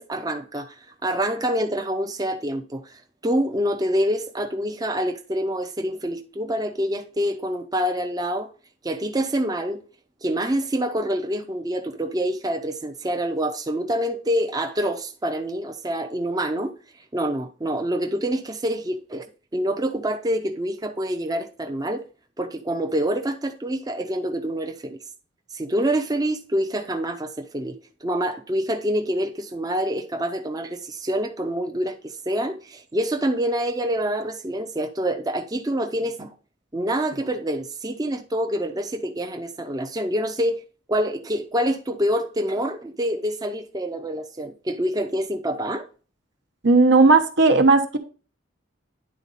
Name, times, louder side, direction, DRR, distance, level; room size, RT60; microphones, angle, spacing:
voice 1, 0.0-8.5 8.8-9.8 10.2-16.7 17.1-19.3 19.5-22.0 22.4-25.0 25.5-36.3 36.7-40.6 40.9-45.8, equal, 20° right, 0.5 m, -26 dB
voice 2, 46.6-48.0, right 3 dB, 65° right, 1.0 m, -15 dB
9.7 x 4.0 x 4.1 m
head